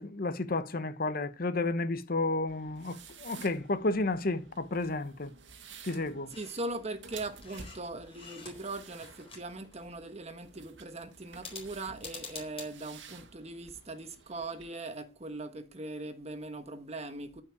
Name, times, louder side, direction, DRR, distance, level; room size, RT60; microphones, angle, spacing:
voice 1, 0.0-5.3 5.8-6.3, left 2 dB, 50° left, 0.9 m, -32 dB
sound 1, 2.5-14.7, right 5 dB, 80° right, 1.7 m, -53 dB
sound 2, 6.3-6.7 7.1-8.7 9.0-9.9 11.3-12.7, left 4 dB, 30° left, 4.4 m, -47 dB
voice 2, 6.3-17.4, right 2 dB, 35° right, 1.3 m, -40 dB
14.0 x 5.7 x 8.3 m
head